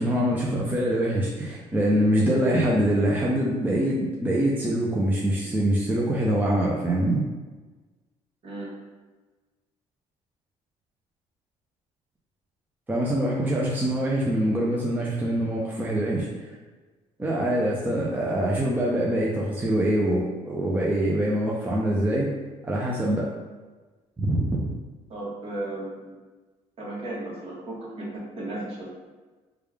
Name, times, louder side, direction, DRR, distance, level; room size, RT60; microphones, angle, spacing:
voice 1, 0.0-7.2 12.9-16.3 17.2-22.3 22.6-23.3 24.2-24.7, right 1 dB, 15° right, -4 dB, 0.5 m, -24 dB
voice 2, 8.4-8.8 25.1-26.2 26.8-28.9, right 1 dB, 50° right, -5 dB, 1.3 m, -35 dB
3.4 x 2.3 x 3.4 m, 1.3 s
cardioid pair, 100°, 13 cm